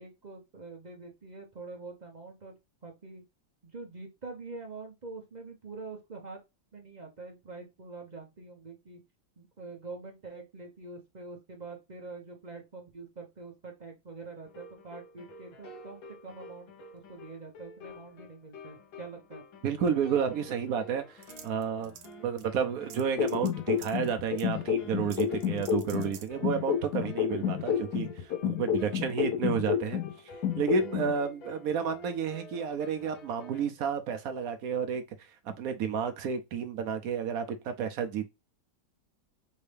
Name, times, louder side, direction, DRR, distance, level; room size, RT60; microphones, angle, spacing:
voice 1, 0.0-2.6 2.8-3.2 3.6-6.4 6.7-9.0 9.4-19.4, right 3 dB, 35° right, 0.7 m, -45 dB
sound 1, 14.4-33.6, left 1 dB, 85° left, 1.9 m, -50 dB
voice 2, 19.6-21.2 21.4-21.9 22.2-30.0 30.6-35.0 35.5-38.3, right 7 dB, 70° right, 0.9 m, -31 dB
sound 2, 21.2-22.1 22.4-22.5 22.9-23.5 23.8-24.1 24.4-24.5 25.1-26.3, right 10 dB, 90° right, 1.4 m, -48 dB
sound 3, 23.2-26.1 26.4-30.1 30.4-31.1, left 8 dB, 65° left, 1.1 m, -29 dB
5.4 x 2.6 x 3.4 m
omnidirectional pair, 2.0 m